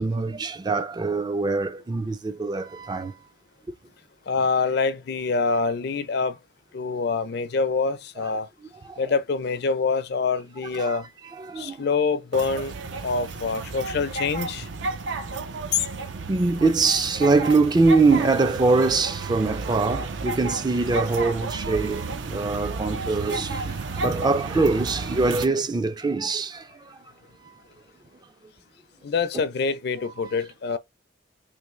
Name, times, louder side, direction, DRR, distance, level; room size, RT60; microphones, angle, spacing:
voice 1, 0.0-3.1 8.2-8.3 8.8-9.1 10.8-11.0 11.3-11.8 16.3-27.0 30.2-30.3, right 3 dB, 25° right, 0.3 m, -23 dB
voice 2, 4.3-6.4 6.7-8.5 9.0-11.1 11.6-12.7 13.0-14.7 29.0-30.8, left 4 dB, 60° left, 0.5 m, -25 dB
sound 1, 12.3-25.5, right 3 dB, 80° right, 0.5 m, -32 dB
3.4 x 2.6 x 3.0 m
head